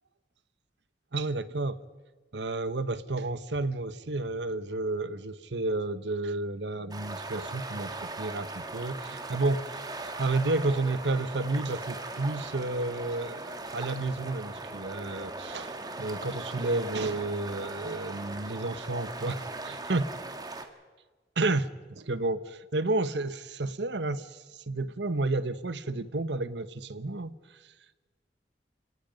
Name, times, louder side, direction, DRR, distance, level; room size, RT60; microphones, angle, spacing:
voice 1, 1.1-1.8 2.3-20.1 21.4-27.3, right 2 dB, 80° right, 13 dB, 1.1 m, -31 dB
sound 1, 6.9-20.7, right 2 dB, 20° right, 1.8 m, -39 dB
29.0 x 18.0 x 5.3 m, 1.3 s
head